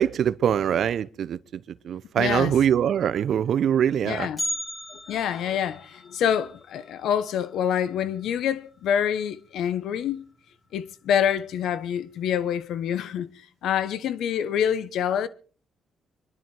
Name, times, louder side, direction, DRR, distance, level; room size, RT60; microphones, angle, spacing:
voice 1, 0.0-1.4 1.8-4.3, right 9 dB, 65° right, 0.7 m, -23 dB
voice 2, 2.2-2.6 4.0-4.4 4.9-10.2 10.7-15.3, left 9 dB, 75° left, 1.1 m, -26 dB
Bell, 4.4-8.5 8.7-8.8 9.3-9.4 10.2-10.3 11.1-11.4 11.7-11.8, left 1 dB, 30° left, 7.6 m, -37 dB
25.5 x 11.0 x 4.5 m
cardioid pair, 90°, 0 cm